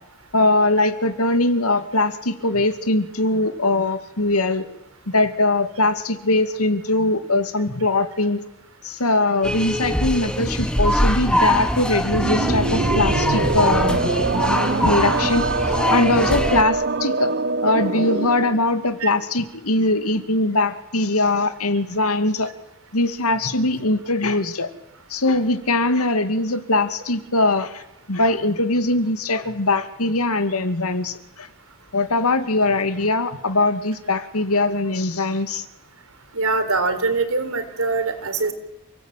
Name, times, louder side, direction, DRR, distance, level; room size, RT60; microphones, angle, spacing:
voice 1, 0.3-4.7 5.1-8.4 8.8-14.2 14.8-17.3 17.6-22.5 22.9-24.7 25.1-27.8 28.1-31.5 31.9-35.6, left 2 dB, 85° left, 10 dB, 2.4 m, -21 dB
sound 1, 9.4-16.6, equal, 5° left, 2.0 m, -22 dB
sound 2, 12.1-18.6, right 3 dB, 50° right, 1.0 m, -24 dB
voice 2, 36.3-38.5, right 3 dB, 75° right, 9 dB, 4.0 m, -23 dB
29.0 x 18.5 x 9.2 m, 0.86 s
head